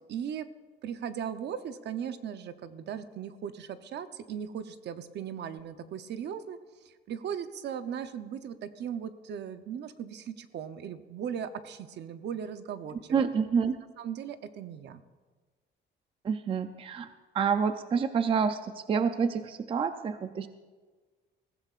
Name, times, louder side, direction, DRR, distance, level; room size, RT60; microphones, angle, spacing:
voice 1, 0.1-0.5 0.8-6.6 6.8-13.2 14.0-15.0, right 8 dB, 65° right, 10 dB, 0.7 m, -38 dB
voice 2, 13.1-13.8 16.2-17.1 17.3-20.5, right 6 dB, 30° right, 10 dB, 0.4 m, -28 dB
21.5 x 15.0 x 2.5 m, 1.4 s
cardioid pair, 175°, 19 cm